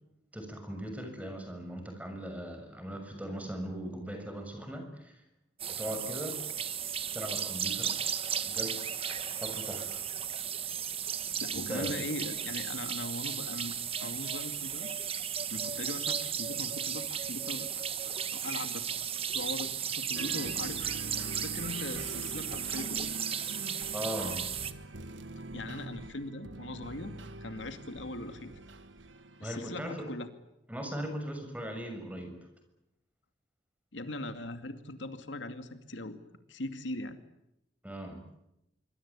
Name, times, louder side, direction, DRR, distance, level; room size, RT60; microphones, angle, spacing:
voice 1, 0.3-5.2 5.7-6.4 7.1-7.9 8.4-8.7 9.1-10.0 11.5-12.0 23.9-24.4 29.4-30.1 30.7-32.4 37.8-38.2, equal, 10° right, 5 dB, 6.7 m, -39 dB
sound 1, 5.6-24.7, right 8 dB, 30° right, 1.5 m, -35 dB
voice 2, 11.4-14.9 15.5-17.8 18.3-19.0 19.3-23.1 25.5-27.1 27.4-28.6 29.4-30.3 33.9-36.2 36.5-37.2, left 2 dB, 80° left, 8 dB, 2.4 m, -40 dB
sound 2, 20.1-29.8, right 2 dB, 80° right, 1.7 m, -44 dB
25.5 x 25.0 x 8.6 m, 0.85 s
head